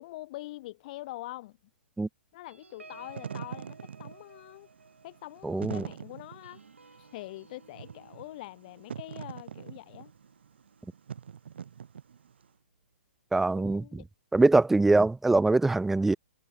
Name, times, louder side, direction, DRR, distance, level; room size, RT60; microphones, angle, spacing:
voice 1, 0.0-1.6 2.3-4.7 5.0-6.6 7.0-10.1 13.5-14.1, left 17 dB, 40° left, 2.7 m, -44 dB
sound 1, 2.5-11.4 11.8-12.0 12.3-12.6, right 3 dB, 85° right, 6.0 m, -56 dB
Wind / Fire, 2.9-12.4, right 8 dB, 60° right, 2.8 m, -43 dB
voice 2, 5.4-5.9 13.3-13.8 14.3-16.2, right 2 dB, 5° right, 0.3 m, -23 dB
figure-of-eight pair, 125°, 7 cm